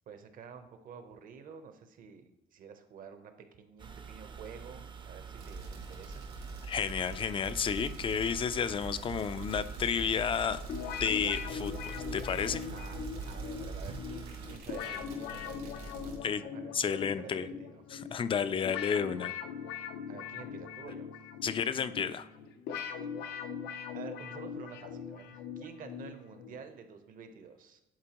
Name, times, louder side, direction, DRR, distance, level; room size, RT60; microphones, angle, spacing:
voice 1, 0.1-6.3 12.7-13.0 13.2-17.8 20.1-21.1 23.9-27.8, right 6 dB, 55° right, 8 dB, 0.8 m, -50 dB
sound 1, 3.8-14.6, right 6 dB, 30° right, 0.5 m, -47 dB
sound 2, 5.4-16.2, right 3 dB, 80° right, 2.2 m, -44 dB
voice 2, 6.7-10.6 11.0-12.7 16.2-16.4 16.7-17.5 17.9-19.3 21.4-22.3, left 7 dB, 30° left, 13 dB, 0.4 m, -31 dB
sound 3, 10.7-26.6, left 7 dB, 85° left, 0.6 m, -41 dB
10.5 x 4.4 x 2.9 m, 0.93 s
cardioid pair, 110°, 17 cm